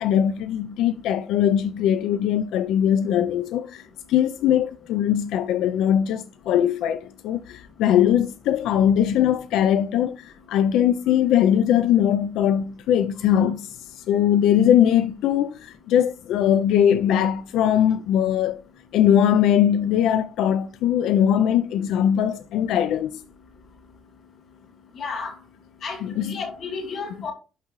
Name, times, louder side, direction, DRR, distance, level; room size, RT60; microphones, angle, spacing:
voice 1, 0.0-3.8 4.1-18.6 18.9-23.2 26.0-26.4, left 10 dB, 90° left, 0.4 m, -21 dB
voice 2, 25.0-25.3 25.8-27.3, left 4 dB, 45° left, 2.1 m, -32 dB
11.0 x 3.7 x 3.1 m
cardioid pair, 175°, 0 cm